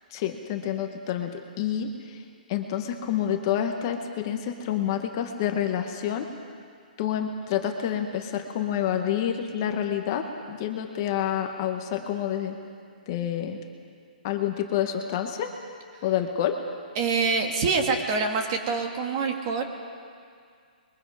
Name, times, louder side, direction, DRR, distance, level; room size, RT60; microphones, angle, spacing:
voice 1, 0.1-2.2 2.5-6.3 7.0-12.6 13.1-13.6 14.2-15.5 16.0-16.6, left 10 dB, 25° left, 5 dB, 1.1 m, -28 dB
voice 2, 16.9-19.6, right 4 dB, 25° right, 4 dB, 1.4 m, -25 dB
26.0 x 22.0 x 4.9 m, 2.2 s
hypercardioid pair, 175°, 5 cm